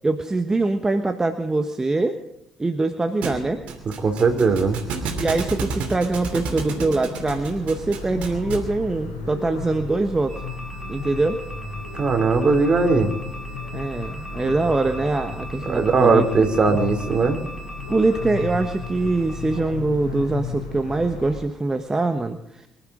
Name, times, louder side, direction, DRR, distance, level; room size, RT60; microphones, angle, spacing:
voice 1, 0.0-2.2 2.6-3.6 5.2-10.4 10.9-11.4 13.7-16.3 16.6-16.8 17.9-22.7, right 2 dB, 20° right, 7 dB, 1.3 m, -23 dB
Thump thud, 3.2-8.8, right 4 dB, 65° right, 2.9 m, -31 dB
voice 2, 4.0-4.8 11.9-13.1 15.7-17.4, right 4 dB, 40° right, 5 dB, 3.2 m, -19 dB
sound 1, 7.1-21.4, left 4 dB, 80° left, 6.4 m, -34 dB
sound 2, 10.3-19.6, equal, ahead, 6.4 m, -40 dB
24.5 x 12.5 x 3.9 m, 0.82 s
hypercardioid pair, 45°, 2 cm